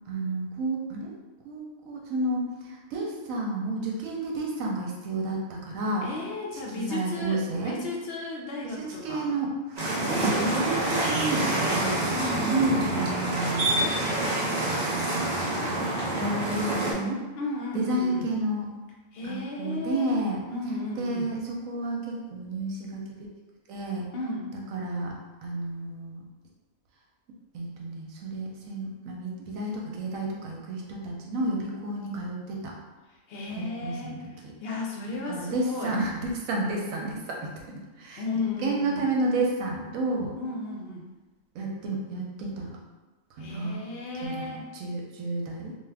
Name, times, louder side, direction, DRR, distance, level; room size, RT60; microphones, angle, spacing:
voice 1, 0.1-1.1 1.4-6.1 6.7-7.8 8.6-10.0 10.4-12.0 12.5-13.9 14.9-15.6 16.2-17.2 17.7-18.7 19.2-20.4 21.0-23.0 23.7-24.1 24.7-25.1 25.4-26.2 27.5-32.7 33.6-34.2 35.3-37.5 38.0-38.2 38.6-40.3 41.5-42.8 43.4-43.8 44.2-45.8, right 2 dB, 80° right, -1 dB, 1.0 m, -31 dB
voice 2, 6.0-9.4 10.0-11.0 12.1-12.6 17.4-18.3 19.1-21.3 24.1-24.5 33.3-36.0 38.2-39.1 40.4-41.1 43.4-44.7, left 3 dB, 65° left, -2 dB, 0.6 m, -34 dB
sound 1, 9.8-16.9, right 1 dB, 50° right, 0.5 m, -27 dB
2.5 x 2.3 x 3.3 m, 1.2 s
omnidirectional pair, 1.4 m